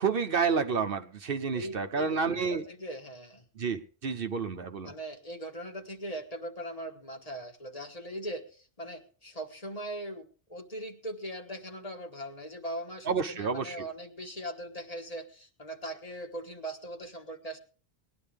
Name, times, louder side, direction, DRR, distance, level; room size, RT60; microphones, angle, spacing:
voice 1, 0.0-2.6 3.6-4.9 13.0-13.9, right 5 dB, 60° right, 7 dB, 1.0 m, -30 dB
voice 2, 1.5-3.4 4.8-17.6, right 1 dB, 35° left, 4 dB, 1.5 m, -40 dB
19.0 x 11.0 x 3.5 m, 0.37 s
omnidirectional pair, 1.1 m